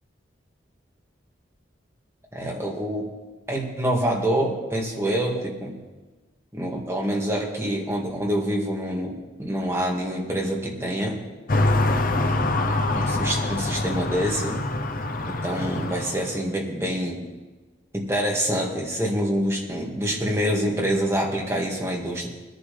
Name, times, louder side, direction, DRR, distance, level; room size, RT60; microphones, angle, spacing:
voice 1, 2.3-3.1 3.5-5.8 6.5-11.2 12.1-14.6 15.2-17.2 17.9-22.3, equal, 15° right, -2 dB, 2.0 m, -26 dB
sound 1, 11.5-16.3, left 2 dB, 45° left, 0.7 m, -25 dB
21.5 x 10.5 x 3.4 m, 1.2 s
head